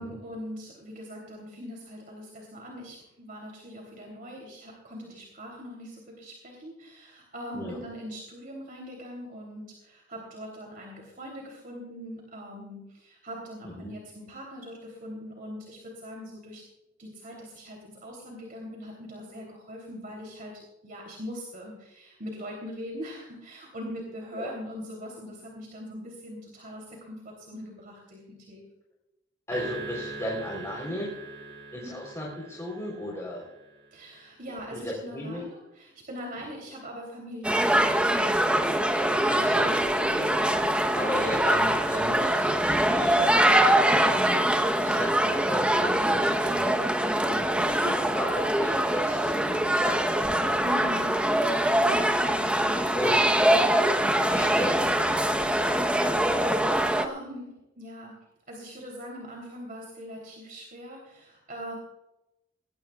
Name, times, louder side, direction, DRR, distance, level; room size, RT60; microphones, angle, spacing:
voice 1, 0.0-16.6 17.0-28.6 33.9-38.0 40.0-40.3 41.0-41.4 46.6-47.1 50.6-51.1 51.7-52.1 56.2-58.1 58.5-61.8, equal, 50° right, -1 dB, 3.3 m, -42 dB
voice 2, 29.5-31.1 31.7-33.4 34.7-35.4 38.8-40.3 40.9-43.3 43.9-44.5 44.8-46.7 47.2-47.4 47.8-50.7 51.0-51.4 51.9-52.1 52.9-53.2 54.1-55.2, left 1 dB, 15° left, -3 dB, 3.9 m, -35 dB
sound 1, 29.5-34.0, right 3 dB, 85° right, 3.7 m, -42 dB
sound 2, 37.4-57.1, right 1 dB, 5° right, 1.0 m, -23 dB
20.0 x 18.0 x 2.4 m, 0.95 s
head